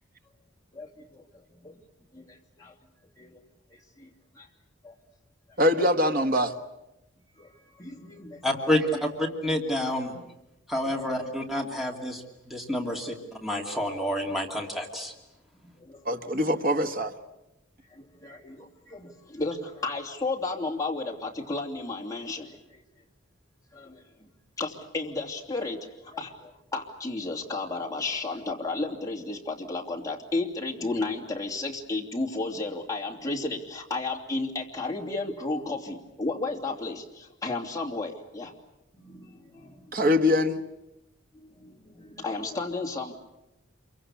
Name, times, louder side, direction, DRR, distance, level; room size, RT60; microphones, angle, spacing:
voice 1, 0.7-1.8 2.1-2.7 3.2-3.4 3.7-4.1 4.4-4.5 4.8-4.9 7.4-8.4 10.8-11.0 15.8-16.0 17.9-22.8 23.7-24.0 24.6-38.5 39.0-40.1 41.3-43.1, left 3 dB, 15° left, 0 dB, 2.9 m, -33 dB
voice 2, 5.6-6.5 16.0-17.1 39.9-40.6, left 1 dB, 45° right, 6 dB, 1.4 m, -23 dB
voice 3, 8.4-10.1 10.7-13.2 13.4-15.1, left 1 dB, ahead, 0 dB, 2.5 m, -28 dB
27.5 x 24.0 x 8.4 m, 0.92 s
head